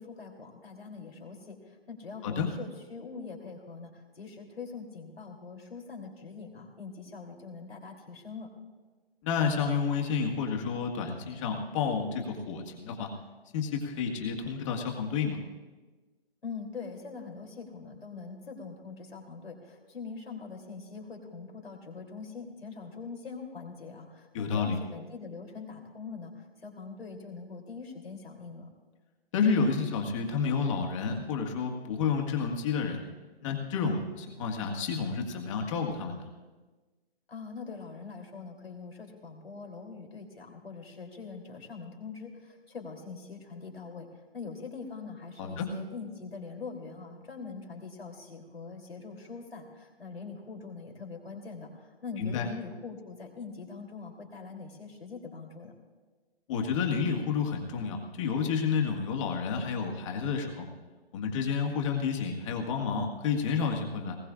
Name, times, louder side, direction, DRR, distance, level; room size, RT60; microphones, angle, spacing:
voice 1, 0.0-8.5 16.4-28.7 37.3-44.1 44.3-55.7, left 5 dB, 75° left, 1 dB, 3.2 m, -43 dB
voice 2, 9.2-13.1 13.5-15.4 24.3-24.8 29.3-33.0 33.4-36.2 45.4-45.7 52.2-52.5 56.5-60.7 61.1-64.2, left 5 dB, 30° left, 2 dB, 1.8 m, -30 dB
19.5 x 17.5 x 2.5 m, 1.3 s
figure-of-eight pair, 135°, 30 cm